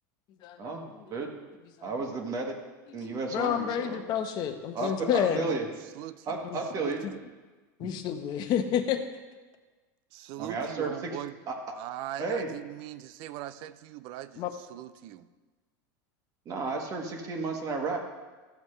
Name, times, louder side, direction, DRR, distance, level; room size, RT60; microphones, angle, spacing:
voice 1, 0.6-1.3 1.8-2.5 2.9-4.0 4.7-5.7 6.3-7.0 7.8-7.9 10.4-11.1 11.5-11.6 12.2-12.5 16.4-18.0, right 3 dB, 35° right, 2 dB, 1.4 m, -32 dB
voice 2, 2.9-5.5 6.5-6.6 7.0-7.1 7.8-9.0 14.4-14.5, left 9 dB, 45° left, 7 dB, 0.9 m, -30 dB
voice 3, 4.8-5.6 5.9-6.4 6.7-7.2 10.1-11.4 11.7-15.3, right 13 dB, 55° right, 14 dB, 0.5 m, -41 dB
14.0 x 7.3 x 3.3 m, 1.3 s
supercardioid pair, 140°, 11 cm